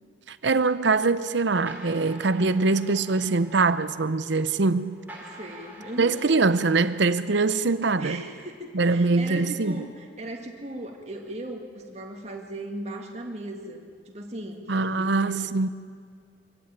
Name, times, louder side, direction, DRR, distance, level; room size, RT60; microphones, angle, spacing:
voice 1, 0.3-5.0 6.0-8.2 8.7-9.8 14.7-15.7, right 3 dB, 70° right, 0.7 m, -23 dB
sound 1, 1.6-8.5, right 1 dB, 10° right, 3.5 m, -48 dB
voice 2, 5.4-6.2 8.0-14.6 15.0-15.4, right 1 dB, 35° right, 2.1 m, -37 dB
24.0 x 14.5 x 8.9 m
head